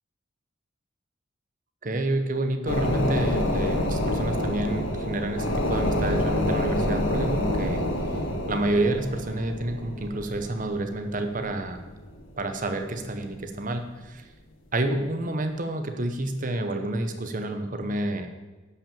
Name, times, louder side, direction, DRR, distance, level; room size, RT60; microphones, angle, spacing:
voice 1, 1.8-7.8 8.5-11.8 12.4-14.2 14.7-18.3, right 1 dB, 40° right, 7 dB, 1.0 m, -29 dB
sound 1, 2.7-12.7 13.0-13.1, left 1 dB, 70° left, 1.7 m, -28 dB
11.0 x 5.9 x 7.1 m, 1.2 s
head